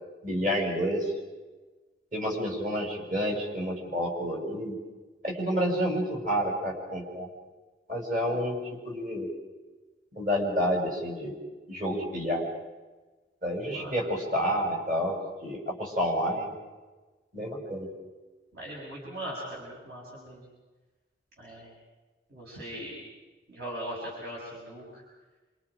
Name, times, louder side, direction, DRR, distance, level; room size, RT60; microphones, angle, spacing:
voice 1, 0.2-1.1 2.1-4.8 5.2-7.3 7.9-9.3 10.1-11.4 11.7-12.5 13.4-16.5 17.3-17.9, equal, 45° right, 0 dB, 6.1 m, -29 dB
voice 2, 18.5-20.4 21.4-21.7 22.3-23.0 23.5-24.8, right 1 dB, 60° right, -5 dB, 6.8 m, -39 dB
28.0 x 27.0 x 5.1 m, 1.2 s
head